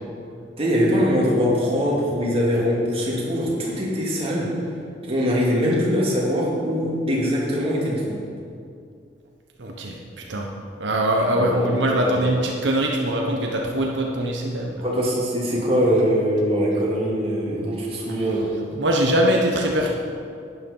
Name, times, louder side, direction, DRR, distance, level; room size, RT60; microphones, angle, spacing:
voice 1, 0.6-4.6 5.0-8.2 11.2-12.2 14.8-18.5, equal, 30° right, -5 dB, 3.0 m, -22 dB
voice 2, 9.6-10.0 10.3-10.5 10.8-14.8 18.1-18.2 18.7-19.9, right 1 dB, 80° right, 0 dB, 1.2 m, -22 dB
12.0 x 9.6 x 5.6 m, 2.4 s
head